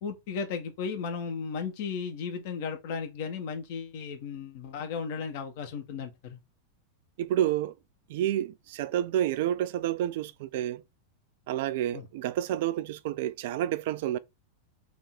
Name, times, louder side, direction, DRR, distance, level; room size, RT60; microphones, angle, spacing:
voice 1, 0.0-6.4 11.9-12.1, left 6 dB, 50° left, 1.1 m, -35 dB
voice 2, 7.2-7.7 8.1-10.8 11.5-14.2, right 12 dB, 50° right, 0.3 m, -29 dB
3.4 x 3.2 x 4.3 m
figure-of-eight pair, 90°, 0 cm